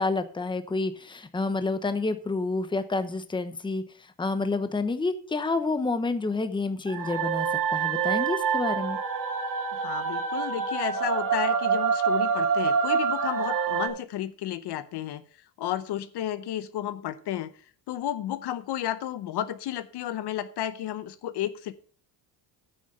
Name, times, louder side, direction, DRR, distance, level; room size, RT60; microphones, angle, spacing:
voice 1, 0.0-3.8 4.2-7.5 7.7-9.0, left 3 dB, 10° left, 10 dB, 0.9 m, -28 dB
Women Choir, 6.9-13.9, right 6 dB, 45° right, 2.3 m, -26 dB
voice 2, 9.7-15.2 15.6-17.5 17.9-21.7, left 11 dB, 60° left, 13 dB, 0.8 m, -32 dB
9.5 x 6.3 x 5.4 m, 0.43 s
cardioid pair, 105°, 45 cm